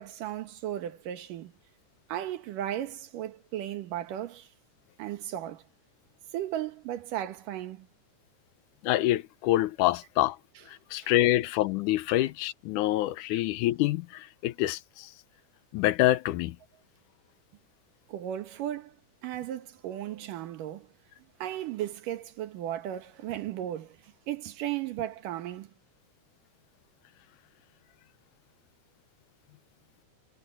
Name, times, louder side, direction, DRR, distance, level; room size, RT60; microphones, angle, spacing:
voice 1, 0.0-1.5 2.1-4.5 5.0-5.6 6.3-7.9 11.0-11.1 13.3-13.4 18.1-19.0 19.2-20.9 21.4-24.0 24.3-25.7, right 12 dB, 80° right, 3.0 m, -35 dB
voice 2, 8.8-10.4 10.9-15.1 15.7-16.6, left 16 dB, 75° left, 2.2 m, -26 dB
omnidirectional pair, 3.7 m